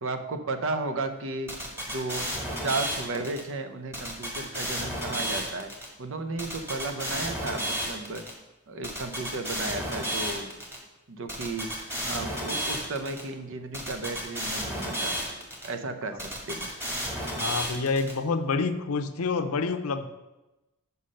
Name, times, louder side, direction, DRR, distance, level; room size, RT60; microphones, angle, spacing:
voice 1, 0.0-1.5 1.9-2.3 2.6-5.7 6.0-8.3 8.7-10.6 11.1-11.7 12.0-15.2 15.6-16.7, right 3 dB, 60° right, 9 dB, 0.7 m, -34 dB
sound 1, 1.5-3.4 3.9-5.9 6.4-8.3 8.8-10.8 11.3-13.2 13.7-15.7 16.2-18.1, equal, 10° right, 1.6 m, -32 dB
voice 2, 17.4-20.1, left 4 dB, 80° left, 9 dB, 0.6 m, -27 dB
5.8 x 5.4 x 6.4 m, 1.0 s
head